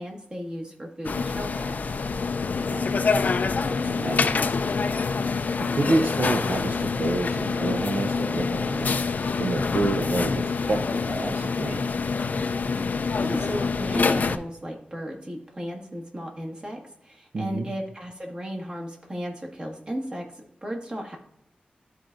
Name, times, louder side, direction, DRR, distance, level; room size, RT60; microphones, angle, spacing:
voice 1, 0.0-1.8 12.9-21.2, equal, 30° right, -1 dB, 1.7 m, -35 dB
sound 1, 1.0-14.4, left 4 dB, 60° left, 0.4 m, -26 dB
voice 2, 2.6-3.1 3.5-4.4 5.6-9.0 9.4-11.9 17.3-17.7, right 2 dB, 65° right, 2 dB, 0.7 m, -29 dB
12.5 x 4.7 x 2.6 m, 0.77 s
wide cardioid pair, 105°, 3 cm